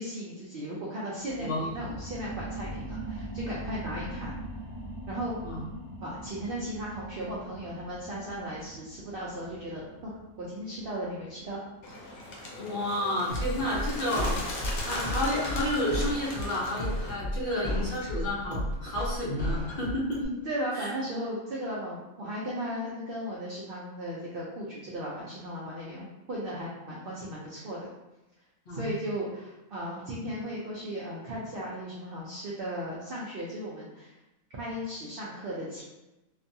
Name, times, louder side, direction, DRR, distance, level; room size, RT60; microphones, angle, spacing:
voice 1, 0.0-4.4 5.1-5.3 6.0-11.6 20.2-27.9 28.7-34.1 34.6-35.8, equal, 65° right, -5 dB, 0.5 m, -36 dB
sound 1, 1.2-12.4 12.8-12.9, right 1 dB, 10° right, 0.8 m, -42 dB
voice 2, 1.4-1.9 5.4-5.7 12.6-20.2 20.7-20.9 28.7-28.9, left 1 dB, 50° left, -6 dB, 0.7 m, -31 dB
Bird, 11.8-17.1, left 1 dB, 75° left, 1.0 m, -38 dB
sound 2, 13.3-20.3, equal, 35° right, 1.1 m, -32 dB
2.5 x 2.3 x 2.6 m, 0.99 s
omnidirectional pair, 1.5 m